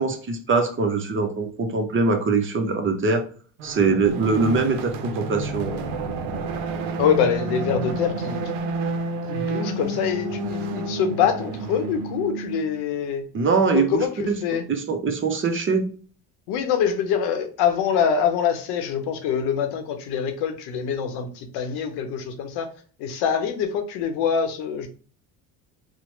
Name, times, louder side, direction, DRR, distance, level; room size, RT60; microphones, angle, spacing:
voice 1, 0.0-3.2 3.6-5.8 13.3-14.4 14.7-15.9, right 4 dB, 30° right, 5 dB, 0.6 m, -22 dB
sound 1, 3.6-12.8, right 3 dB, 85° right, 0.5 m, -30 dB
voice 2, 7.0-8.4 9.3-13.2 13.7-14.6 16.5-22.7 23.0-24.9, left 7 dB, 75° left, 6 dB, 0.7 m, -24 dB
2.9 x 2.1 x 2.9 m, 0.40 s
supercardioid pair, 85°, 39 cm